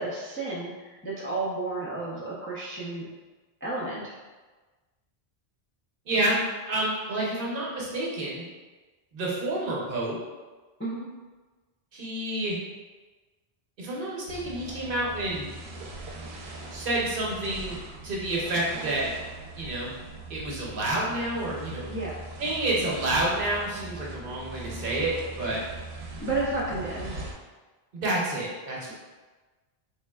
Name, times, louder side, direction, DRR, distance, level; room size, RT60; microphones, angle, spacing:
voice 1, 0.0-3.1 3.6-4.1 10.8-11.1 21.9-22.1 26.2-27.2, right 2 dB, 20° left, -7 dB, 0.4 m, -32 dB
voice 2, 6.1-6.4 6.7-8.4 9.1-10.2 11.9-12.6 13.8-15.5 16.7-19.1 19.6-19.9 20.3-21.9 22.4-25.6 27.9-28.9, right 1 dB, 60° right, -4 dB, 1.0 m, -29 dB
sound 1, 14.3-27.3, right 2 dB, 90° right, 0.8 m, -40 dB
3.7 x 3.2 x 2.3 m, 1.3 s
omnidirectional pair, 1.0 m